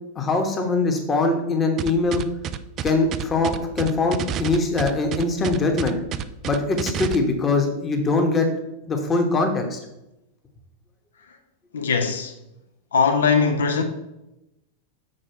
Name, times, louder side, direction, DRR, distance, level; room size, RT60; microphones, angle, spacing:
voice 1, 0.1-2.2 2.8-6.0 6.4-8.5 8.9-9.8, left 3 dB, 20° left, 1.2 m, -22 dB
sound 1, 1.8-7.1, right 9 dB, 35° right, 0.3 m, -29 dB
voice 2, 11.7-12.3 12.9-13.8, left 5 dB, 65° left, 0.8 m, -20 dB
6.7 x 4.7 x 4.4 m
figure-of-eight pair, 90°, 0 cm